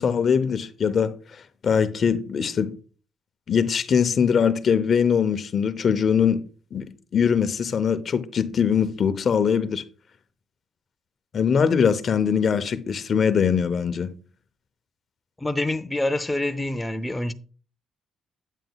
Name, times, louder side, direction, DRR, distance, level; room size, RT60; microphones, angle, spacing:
voice 1, 0.0-2.8 3.5-6.4 6.7-9.8 11.3-14.1, left 7 dB, 50° left, 0.8 m, -22 dB
voice 2, 15.4-17.3, left 1 dB, 10° left, 0.6 m, -26 dB
9.0 x 7.5 x 2.3 m
cardioid pair, 90°, 0 cm